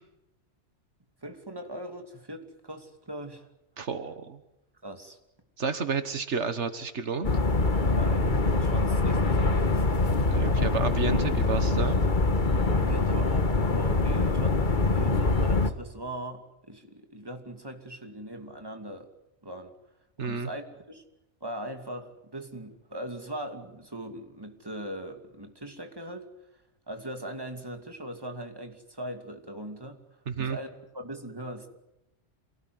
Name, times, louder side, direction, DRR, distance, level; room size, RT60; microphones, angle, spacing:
voice 1, 1.2-3.5 4.8-5.2 7.9-9.8 12.7-19.1 19.4-19.7 20.2-21.0 21.4-26.3 26.9-30.0 30.4-30.7 30.9-31.7, right 1 dB, 20° right, 5 dB, 2.7 m, -40 dB
voice 2, 3.8-4.4 5.6-7.3 10.2-12.0 20.2-20.5 30.3-30.6, right 5 dB, 80° right, 10 dB, 1.7 m, -31 dB
sound 1, 7.2-15.7, left 3 dB, 45° left, 1.6 m, -24 dB
27.5 x 18.0 x 9.6 m, 0.89 s
omnidirectional pair, 1.2 m